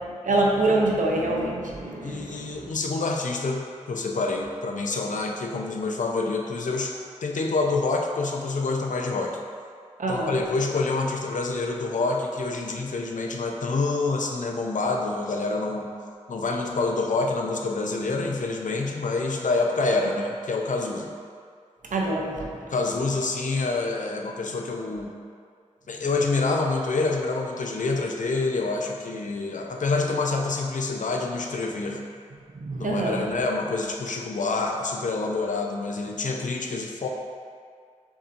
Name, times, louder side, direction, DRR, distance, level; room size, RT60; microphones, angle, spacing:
voice 1, 0.1-2.7 10.0-10.4 21.9-22.6 32.6-33.3, right 2 dB, 85° right, -1 dB, 0.5 m, -25 dB
voice 2, 2.0-6.9 7.2-9.4 10.1-15.9 16.3-21.1 22.7-25.1 25.9-32.0 32.8-37.1, left 3 dB, 75° left, 1 dB, 0.5 m, -27 dB
7.0 x 2.7 x 2.5 m, 2.2 s
cardioid pair, 45°, 13 cm